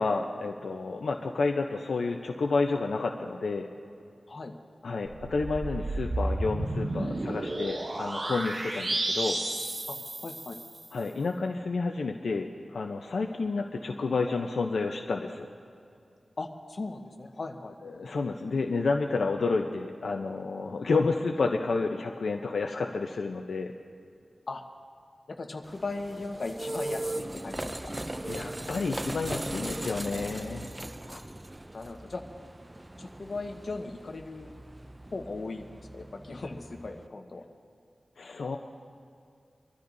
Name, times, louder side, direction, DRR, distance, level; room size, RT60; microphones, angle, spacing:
voice 1, 0.0-3.7 4.8-9.4 10.9-15.5 17.8-23.7 28.3-30.7 38.2-38.6, left 3 dB, 85° left, 2 dB, 0.7 m, -30 dB
sound 1, 5.1-10.9, right 2 dB, 40° right, 1.0 m, -32 dB
voice 2, 10.2-10.6 16.4-17.8 24.5-24.6 25.3-27.9 31.1-31.2 31.7-32.2 33.0-34.5 35.1-37.5, left 3 dB, 55° left, 3 dB, 1.2 m, -38 dB
sound 2, 25.6-37.1, right 1 dB, 15° right, 0.4 m, -39 dB
25.5 x 13.0 x 2.7 m, 2.4 s
wide cardioid pair, 105°, 0 cm